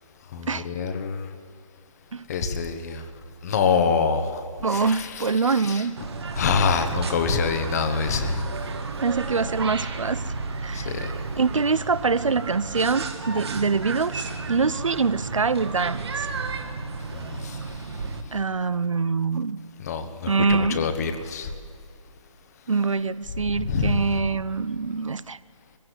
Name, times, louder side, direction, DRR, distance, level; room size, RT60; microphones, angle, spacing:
voice 1, 0.3-1.3 2.3-3.0 3.4-4.4 4.7-5.9 6.3-8.5 10.7-11.1 17.1-17.6 19.8-21.5 23.5-24.1, left 5 dB, 30° left, 8 dB, 1.3 m, -26 dB
voice 2, 4.6-6.0 9.0-10.2 10.6-10.9 11.4-16.3 18.3-19.6 20.3-20.8 22.7-25.4, right 4 dB, 70° right, 17 dB, 0.7 m, -24 dB
sound 1, 6.0-18.2, right 3 dB, 50° right, 1.9 m, -32 dB
20.0 x 16.0 x 8.3 m, 2.4 s
figure-of-eight pair, 150°, 17 cm